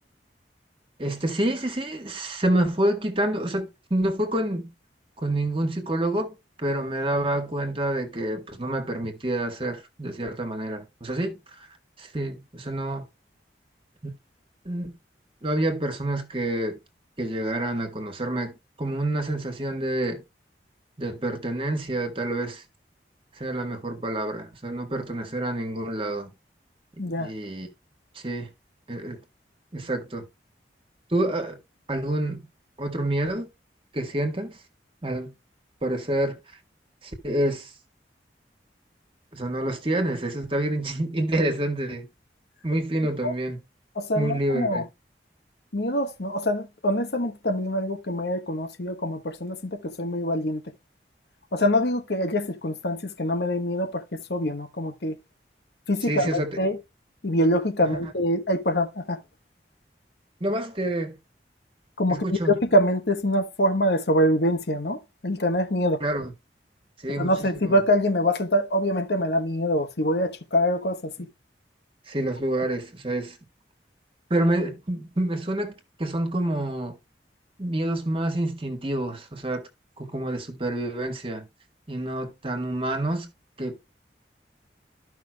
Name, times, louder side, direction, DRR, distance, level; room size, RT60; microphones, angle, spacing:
voice 1, 1.0-4.7 5.2-11.7 12.0-13.1 14.0-14.2 14.7-14.9 15.4-16.8 17.2-20.2 21.0-22.6 23.4-26.3 27.2-27.7 28.2-28.5 28.9-29.2 29.7-30.3 31.1-31.6 31.9-32.5 32.8-33.5 33.9-34.6 35.0-35.3 35.8-36.4 37.0-37.7 39.3-42.1 42.6-43.6 44.2-44.8 56.1-56.6 60.4-61.2 62.1-62.6 66.0-66.3 67.0-67.8 72.1-73.4 74.3-77.0 77.6-79.7 80.0-81.5 81.9-83.3 83.6-83.8, right 1 dB, 30° right, 1.8 m, -28 dB
voice 2, 27.0-27.3 43.2-43.3 44.0-44.8 45.7-50.6 51.5-55.2 55.9-56.8 57.2-59.2 62.0-66.0 67.2-71.1, equal, 65° left, 1.2 m, -24 dB
13.5 x 5.8 x 2.3 m
head